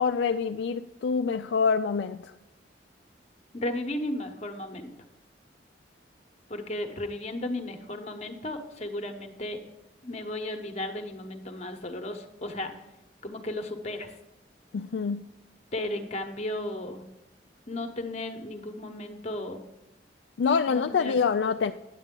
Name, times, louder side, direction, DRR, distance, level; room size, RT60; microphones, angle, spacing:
voice 1, 0.0-2.3 14.7-15.3 20.4-21.7, left 5 dB, 75° left, 6 dB, 0.4 m, -26 dB
voice 2, 3.5-4.9 6.5-9.6 10.0-12.7 13.2-14.2 15.7-17.0 17.7-19.6 20.7-21.2, left 1 dB, 40° left, 6 dB, 1.0 m, -34 dB
9.9 x 8.1 x 3.7 m, 0.94 s
head